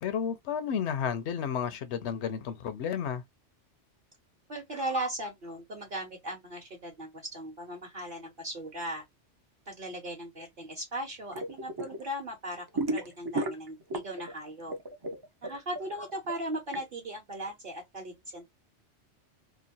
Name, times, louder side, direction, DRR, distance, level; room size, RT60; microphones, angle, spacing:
voice 1, 0.0-3.2, left 7 dB, 75° left, 0.8 m, -32 dB
voice 2, 4.5-9.0 9.7-14.7 15.4-18.4, right 1 dB, 50° right, 1.0 m, -38 dB
sound 1, 11.3-12.0 12.3-14.3 14.6-16.8, right 2 dB, 35° right, 0.4 m, -33 dB
2.9 x 2.2 x 2.5 m
omnidirectional pair, 1.2 m